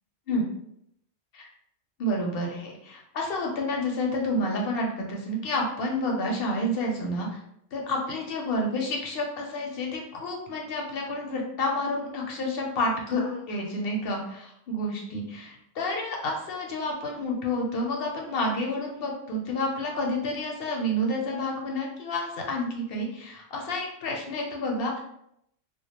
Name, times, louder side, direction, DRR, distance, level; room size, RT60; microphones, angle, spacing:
voice 1, 2.0-7.4 7.7-25.0, left 1 dB, 60° left, 0 dB, 0.7 m, -29 dB
2.3 x 2.1 x 2.8 m, 0.75 s
omnidirectional pair, 1.3 m